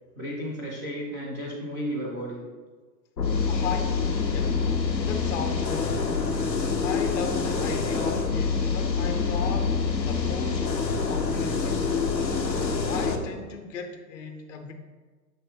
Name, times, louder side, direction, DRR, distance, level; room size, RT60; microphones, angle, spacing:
voice 1, 0.2-2.4, equal, 5° right, -5 dB, 0.3 m, -33 dB
sound 1, 3.2-13.2, left 4 dB, 85° left, 0.8 m, -26 dB
voice 2, 3.5-4.6 5.0-6.2 6.8-9.8 10.0-10.7 11.1-12.0 12.9-14.7, left 6 dB, 45° left, 4 dB, 0.8 m, -36 dB
6.7 x 3.3 x 4.4 m, 1.4 s
figure-of-eight pair, 100°, 50 cm